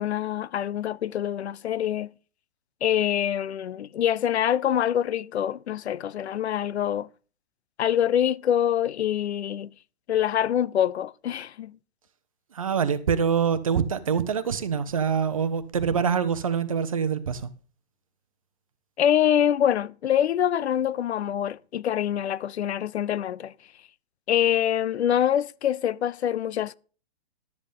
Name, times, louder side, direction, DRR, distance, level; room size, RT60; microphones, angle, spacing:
voice 1, 0.0-2.1 2.8-7.1 7.8-9.7 10.1-11.8 19.0-23.5 24.3-26.8, left 10 dB, 80° left, 0.6 m, -25 dB
voice 2, 12.5-17.5, right 7 dB, 30° right, 0.7 m, -25 dB
12.0 x 7.8 x 5.1 m
hypercardioid pair, 180°, 32 cm